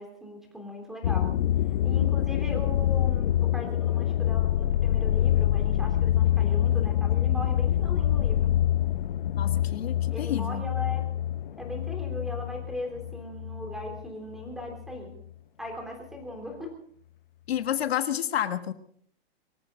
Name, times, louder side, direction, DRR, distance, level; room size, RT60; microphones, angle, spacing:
voice 1, 0.0-1.3 1.8-8.5 10.1-11.1 11.6-15.1 15.6-16.7, left 1 dB, ahead, 2 dB, 3.2 m, -38 dB
sound 1, 1.0-14.1 14.4-15.0, left 12 dB, 50° left, 0.7 m, -26 dB
voice 2, 9.3-10.6 17.5-18.7, left 10 dB, 75° left, 8 dB, 1.6 m, -30 dB
24.0 x 14.5 x 3.9 m, 0.62 s
supercardioid pair, 180°, 31 cm